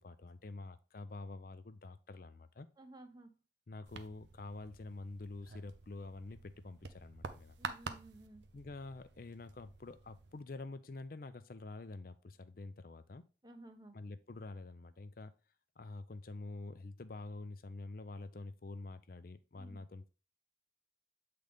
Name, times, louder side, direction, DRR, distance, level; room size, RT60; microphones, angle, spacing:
voice 1, 0.0-2.7 3.7-7.6 8.5-13.2 13.9-15.3 15.8-20.1, left 3 dB, 50° left, 0.5 m, -47 dB
voice 2, 2.8-3.3 7.6-8.4 13.4-14.0 19.6-19.8, right 2 dB, 20° right, 0.7 m, -55 dB
sound 1, 3.9-10.4, right 4 dB, 70° right, 0.6 m, -49 dB
7.9 x 3.9 x 3.5 m
head